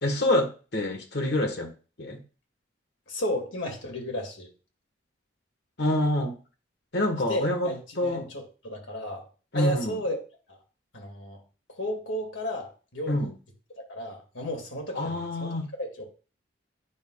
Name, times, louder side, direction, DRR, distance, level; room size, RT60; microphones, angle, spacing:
voice 1, 0.0-1.7 2.0-2.2 5.8-6.3 6.9-7.7 8.0-8.2 9.5-10.0 13.1-13.3 14.9-15.7, left 1 dB, 55° left, 1.6 m, -26 dB
voice 2, 3.1-4.5 7.3-9.3 9.5-10.2 10.5-10.6 10.9-11.4 11.7-13.3 13.8-16.0, equal, 75° left, 2.5 m, -33 dB
9.3 x 5.8 x 2.4 m
head